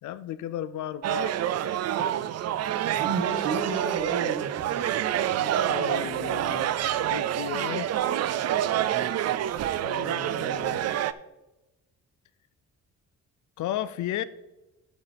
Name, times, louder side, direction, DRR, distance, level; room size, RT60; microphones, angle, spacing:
voice 1, 0.0-1.4 1.6-1.9 5.4-6.7 7.1-7.9 9.8-10.8 13.6-14.2, left 12 dB, 70° left, 0.6 m, -34 dB
sound 1, 1.0-11.1, right 11 dB, 60° right, 0.4 m, -27 dB
voice 2, 2.9-5.0 8.9-9.1, right 4 dB, 85° right, 1.6 m, -32 dB
11.5 x 7.9 x 3.4 m
cardioid pair, 90°, 30 cm